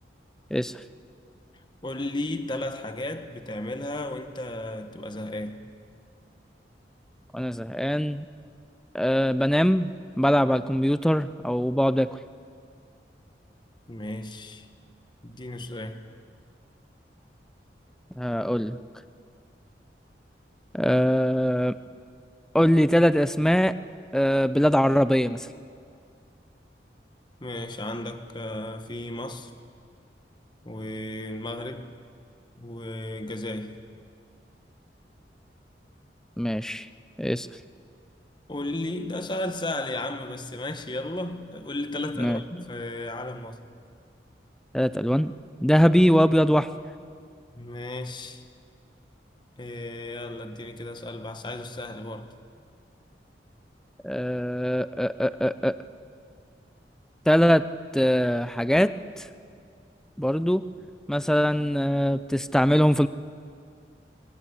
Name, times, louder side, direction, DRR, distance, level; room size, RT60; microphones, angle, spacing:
voice 1, 1.8-5.6 13.9-14.7 15.2-16.0 27.4-29.5 30.6-31.9 32.6-33.8 38.5-43.6 47.5-48.4 49.6-52.3, left 1 dB, 25° left, 1.3 m, -34 dB
voice 2, 7.3-8.3 8.9-9.9 10.2-12.1 18.2-18.8 20.7-21.8 22.5-23.8 24.1-25.5 36.4-36.9 37.2-37.5 42.2-42.4 44.7-45.3 45.6-46.7 54.0-55.8 57.3-57.7 57.9-59.3 60.2-60.6 61.1-63.1, equal, 5° left, 0.5 m, -22 dB
26.5 x 21.5 x 8.3 m
head